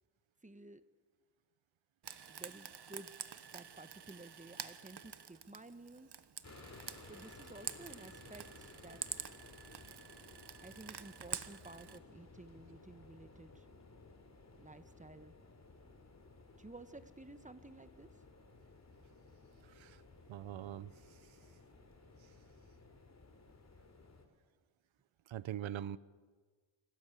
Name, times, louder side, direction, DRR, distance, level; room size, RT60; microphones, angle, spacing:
voice 1, 0.4-0.8 2.3-3.2 3.5-6.1 7.1-9.3 10.6-13.7 14.6-15.4 16.6-18.1, right 2 dB, 15° right, 11 dB, 1.2 m, -54 dB
Frying (food), 2.0-12.0, right 8 dB, 60° right, 1.3 m, -48 dB
sound 1, 6.4-24.3, left 3 dB, 35° left, 3.4 m, -58 dB
voice 2, 19.6-20.0 20.3-21.2 25.3-26.0, right 11 dB, 90° right, 18 dB, 0.8 m, -43 dB
26.0 x 17.5 x 8.4 m, 1.5 s
cardioid pair, 85°, 45 cm